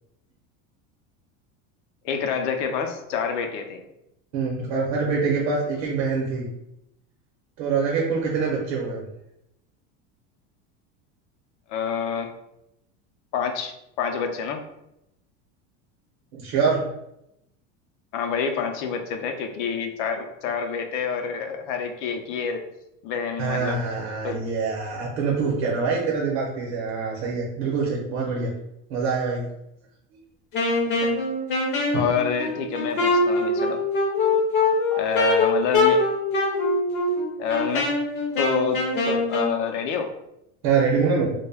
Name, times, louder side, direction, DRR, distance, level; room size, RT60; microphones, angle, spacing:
voice 1, 2.0-3.8 11.7-12.3 13.3-14.6 18.1-22.6 23.0-23.8 24.2-24.4 31.0-31.1 31.9-33.8 35.0-36.0 37.4-37.9 38.4-40.1, left 6 dB, 80° left, 6 dB, 0.5 m, -27 dB
voice 2, 4.3-6.5 7.6-9.0 16.3-16.8 23.4-28.5 28.9-29.4 31.9-32.0 34.9-35.1 37.6-37.7 40.6-41.3, right 5 dB, 55° right, -3 dB, 0.7 m, -25 dB
Wind instrument woodwind instrument, 30.5-39.5, left 2 dB, 30° left, 0.5 m, -23 dB
2.2 x 2.1 x 3.3 m, 0.84 s
cardioid pair, 170°, 35 cm